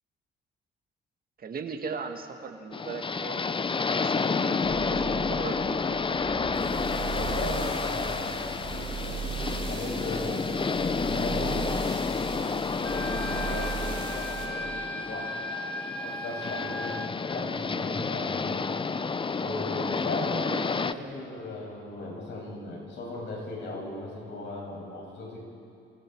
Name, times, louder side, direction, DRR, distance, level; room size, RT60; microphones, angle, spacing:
voice 1, 1.4-3.6 3.9-6.0 16.5-16.8, right 5 dB, 50° right, 5 dB, 2.0 m, -39 dB
sound 1, 2.7-20.9, left 4 dB, 25° left, 0.7 m, -30 dB
sound 2, 4.6-14.5, right 5 dB, 25° right, 6.3 m, -37 dB
voice 2, 7.1-10.5 11.1-15.3 16.0-18.7 19.4-25.4, left 2 dB, 70° left, -2 dB, 7.8 m, -37 dB
Wind instrument woodwind instrument, 12.8-17.1, left 1 dB, 10° left, 1.8 m, -37 dB
28.0 x 28.0 x 4.9 m, 2.5 s
cardioid pair, 90°, 20 cm